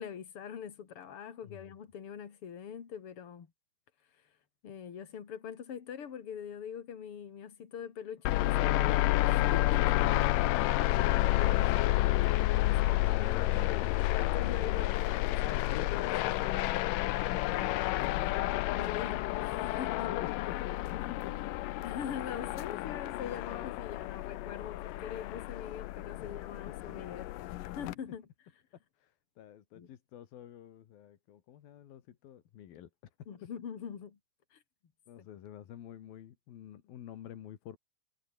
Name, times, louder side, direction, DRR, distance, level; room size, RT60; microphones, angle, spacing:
voice 1, 0.0-3.5 4.6-10.0 11.3-11.8 12.6-16.7 18.7-20.1 21.8-27.3 27.6-28.3 29.7-29.9 33.3-34.2 34.5-34.6 35.2-35.3, left 8 dB, 40° left, 2.8 m, -43 dB
voice 2, 1.4-1.7 9.9-11.5 12.7-13.8 15.4-15.9 17.6-18.5 20.1-21.4 26.2-26.3 29.0-32.9 35.1-37.8, left 11 dB, 65° left, 3.5 m, -47 dB
sound 1, 8.3-27.9, left 16 dB, 85° left, 1.9 m, -30 dB
omnidirectional pair, 4.8 m